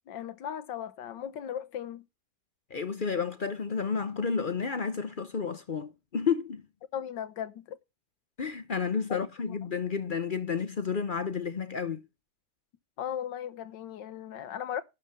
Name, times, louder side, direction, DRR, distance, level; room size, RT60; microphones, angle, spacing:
voice 1, 0.1-2.0 6.9-7.8 9.1-9.6 13.0-14.8, left 9 dB, 90° left, 1.7 m, -37 dB
voice 2, 2.7-6.6 8.4-12.0, left 6 dB, 50° left, 0.6 m, -31 dB
12.0 x 5.2 x 6.9 m
omnidirectional pair, 1.9 m